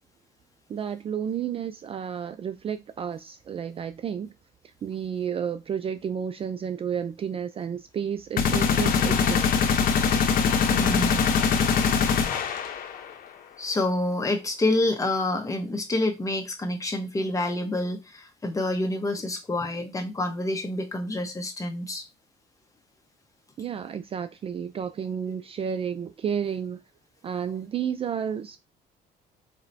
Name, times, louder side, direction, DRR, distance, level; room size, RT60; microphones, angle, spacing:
voice 1, 0.7-4.3 4.8-9.5 23.6-26.8 27.2-28.6, right 8 dB, 35° right, 0.4 m, -31 dB
sound 1, 8.4-13.1, left 6 dB, 55° left, 0.8 m, -22 dB
voice 2, 10.7-11.2 13.6-22.0, left 2 dB, 20° left, 1.0 m, -28 dB
4.3 x 2.9 x 2.6 m
cardioid pair, 110°, 17 cm